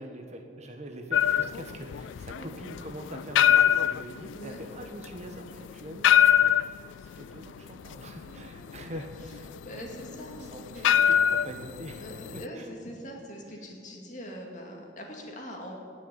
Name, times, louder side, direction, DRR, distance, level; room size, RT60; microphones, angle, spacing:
voice 1, 0.0-9.5 10.1-12.7 13.6-13.7, right 1 dB, 35° right, 4 dB, 1.2 m, -43 dB
sound 1, 1.1-12.5, left 10 dB, 80° left, 0.3 m, -25 dB
voice 2, 8.3-8.7 9.6-10.5 10.7-10.9 12.0-15.8, equal, 40° left, 0 dB, 2.3 m, -42 dB
18.5 x 6.5 x 8.7 m, 2.4 s
head